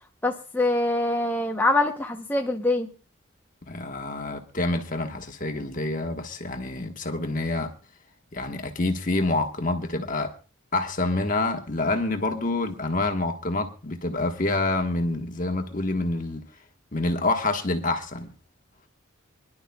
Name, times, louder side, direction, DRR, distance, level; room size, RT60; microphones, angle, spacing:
voice 1, 0.2-2.9, left 2 dB, 10° left, 0.7 m, -24 dB
voice 2, 3.7-7.7 8.3-10.3 10.7-16.4 16.9-18.3, left 2 dB, 40° left, 1.3 m, -27 dB
26.0 x 11.0 x 2.3 m
head